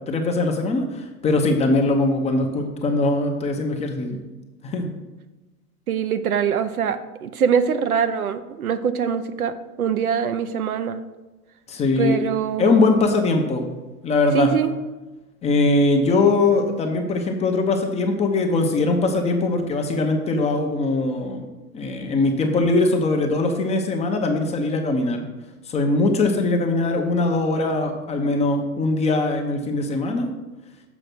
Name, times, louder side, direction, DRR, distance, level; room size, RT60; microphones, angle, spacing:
voice 1, 0.1-4.2 4.6-4.9 11.7-12.2 12.6-13.7 14.0-14.5 15.4-21.5 21.7-25.2 25.7-30.3, left 3 dB, 15° left, 3 dB, 0.7 m, -21 dB
voice 2, 5.9-9.5 9.8-11.0 12.0-12.8 14.3-14.8, right 7 dB, 70° right, 10 dB, 0.7 m, -23 dB
7.0 x 4.9 x 5.9 m, 1.1 s
figure-of-eight pair, 100°, 46 cm